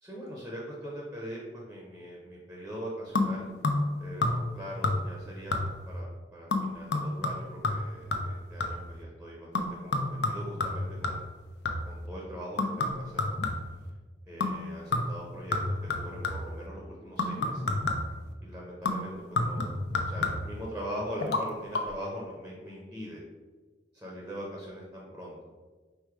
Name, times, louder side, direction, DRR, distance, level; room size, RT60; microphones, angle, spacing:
voice 1, 0.0-3.5 4.0-11.3 11.8-13.4 14.3-15.6 16.0-17.7 18.4-19.8 20.0-23.2 23.9-25.4, equal, 5° right, -3 dB, 0.6 m, -41 dB
sound 1, 3.2-3.9 4.2-4.6 4.8-5.2 5.5-5.9 6.5-8.9 9.5-12.0 12.6-13.9 14.4-14.6 14.9-16.6 17.2-18.2 18.9-20.6 21.2-21.4 21.7-21.8, left 2 dB, 70° left, 0.5 m, -30 dB
4.5 x 2.2 x 4.7 m, 1.3 s
head